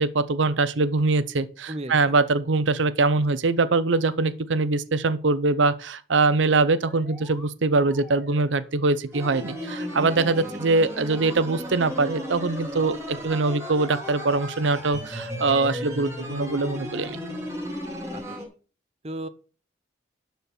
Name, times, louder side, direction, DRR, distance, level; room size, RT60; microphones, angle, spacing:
voice 1, 0.0-17.2, right 3 dB, 75° right, 0.7 m, -23 dB
sound 1, 6.4-7.5 7.8-8.8 9.1-10.1 10.6-11.4 11.8-12.8 13.4-14.2, left 1 dB, 5° left, 2.0 m, -49 dB
sound 2, 9.1-18.5, equal, 15° right, 2.7 m, -35 dB
voice 2, 18.1-18.5 19.0-19.3, right 1 dB, 35° right, 0.8 m, -35 dB
12.0 x 4.6 x 6.8 m
head